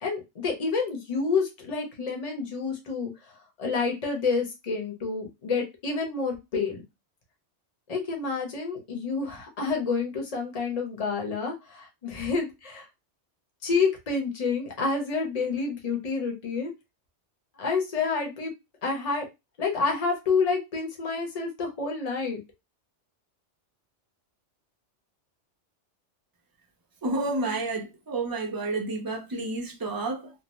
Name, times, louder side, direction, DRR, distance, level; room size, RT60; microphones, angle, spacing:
voice 1, 0.0-3.1 3.6-6.8 7.9-12.9 13.6-16.7 17.6-18.5 18.8-19.3 19.6-22.4, left 4 dB, 35° left, 0.8 m, -28 dB
voice 2, 27.0-30.3, right 2 dB, 30° right, 0.4 m, -30 dB
2.6 x 2.0 x 3.0 m
omnidirectional pair, 1.2 m